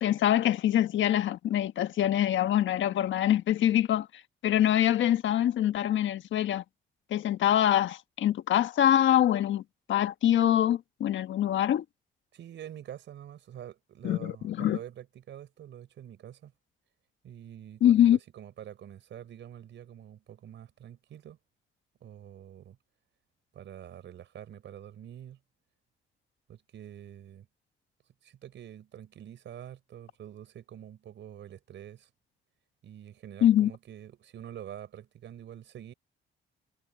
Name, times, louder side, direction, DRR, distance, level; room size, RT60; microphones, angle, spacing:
voice 1, 0.0-4.1 4.4-6.6 7.1-9.6 9.9-11.8 14.0-14.8 17.8-18.2 33.4-33.7, left 11 dB, 70° left, 1.4 m, -24 dB
voice 2, 12.3-16.5 17.2-21.4 22.0-22.8 23.5-25.4 26.5-27.5 28.2-32.1 32.8-35.9, right 10 dB, 70° right, 4.5 m, -46 dB
cardioid pair, 90°, 20 cm